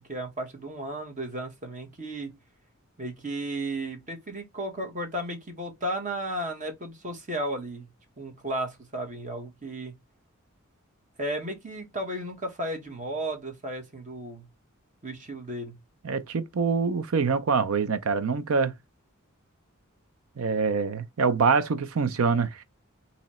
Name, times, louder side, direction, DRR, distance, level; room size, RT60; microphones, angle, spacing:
voice 1, 0.1-2.3 3.0-7.9 8.2-9.9 11.2-14.4 15.0-15.8, right 1 dB, 35° right, 1.1 m, -34 dB
voice 2, 16.0-18.7 20.4-22.6, right 5 dB, 80° right, 0.5 m, -25 dB
3.0 x 2.8 x 4.1 m
head